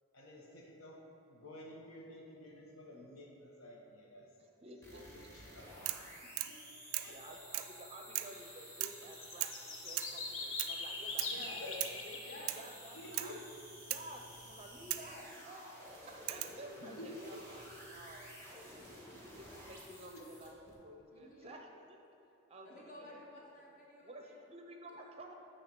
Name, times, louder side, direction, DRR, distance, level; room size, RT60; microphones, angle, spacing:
voice 1, 0.1-1.0 1.3-4.3 4.9-5.7 6.5-6.6 6.8-7.4 11.6-11.7 12.9-13.3 16.8-17.1 17.8-18.0 20.1-20.2, left 1 dB, 85° left, -1 dB, 1.1 m, -52 dB
voice 2, 4.4-5.8 7.1-11.3 11.6-12.2 12.5-13.3 13.8-15.7 16.1-17.6 17.9-18.4 19.4-22.0 22.5-23.2 24.0-25.3, right 1 dB, 30° right, 2 dB, 0.5 m, -52 dB
sound 1, 4.8-20.7, equal, 15° left, 1.2 m, -53 dB
sound 2, 5.9-6.1 6.4-6.6 6.9-7.2 7.5-7.8 8.2-8.4 8.8-9.1 9.4-9.6 10.0-10.2 10.6-10.8 11.2-11.4 11.8-12.0 12.5-12.7 13.1-13.4 13.9-14.1 14.9-15.1 16.3-16.6 17.8-18.3, right 15 dB, 85° right, 0.3 m, -39 dB
sound 3, 8.2-8.5 8.8-13.2, left 3 dB, 65° left, 0.8 m, -43 dB
voice 3, 11.2-11.6 12.2-12.6 14.9-15.3 21.1-21.6 22.6-24.4, left 1 dB, 40° left, -3 dB, 1.2 m, -53 dB
8.9 x 3.3 x 5.9 m, 2.8 s
head